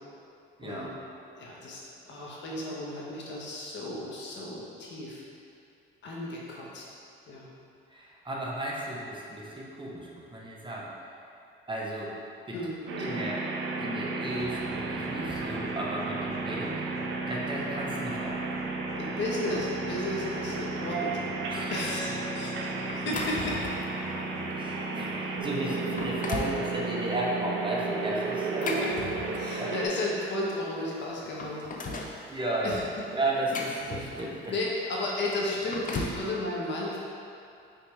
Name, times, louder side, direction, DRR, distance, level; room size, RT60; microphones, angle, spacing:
voice 1, 0.6-0.9 7.9-10.9 11.7-12.2 12.5-12.6 13.0-13.4 13.8-16.8 17.3-18.4 21.5-21.9 22.4-22.5 23.2-23.3 24.6-28.7 29.6-29.7 32.3-32.9 33.1-34.5, right 1 dB, 25° right, -3 dB, 1.0 m, -34 dB
voice 2, 1.3-5.2 6.0-6.8 7.3-7.5 12.5-13.2 19.0-21.2 21.7-22.1 22.3-23.6 28.6-28.9 29.4-32.4 32.6-32.8 34.5-37.0, left 1 dB, 65° left, -4 dB, 1.2 m, -34 dB
sound 1, 12.9-29.9, right 3 dB, 75° right, 0.7 m, -33 dB
sound 2, 14.3-25.3, equal, 15° left, 1.2 m, -50 dB
sound 3, 22.9-23.9 24.5-24.7 25.3-25.4 25.8-26.6 28.3-29.6 30.7-30.8 31.1-32.2 33.0-34.5 35.4-36.3, left 3 dB, 40° left, 0.7 m, -36 dB
5.7 x 4.7 x 3.4 m, 2.5 s
cardioid pair, 90°, 20 cm